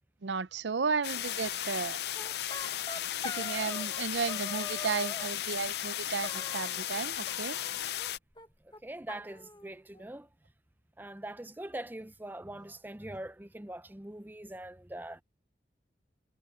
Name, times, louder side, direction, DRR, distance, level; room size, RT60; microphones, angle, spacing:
voice 1, 0.2-2.0 3.2-7.6, right 5 dB, 85° right, 0.6 m, -34 dB
sound 1, 1.0-8.2, left 12 dB, 65° left, 0.5 m, -35 dB
sound 2, 2.1-4.0 4.3-5.3 6.2-7.0 7.3-8.1 8.4-8.5 8.7-8.8 9.1-10.1, left 3 dB, 25° left, 1.6 m, -43 dB
voice 2, 8.8-10.3 11.0-15.2, right 1 dB, 10° right, 0.5 m, -42 dB
head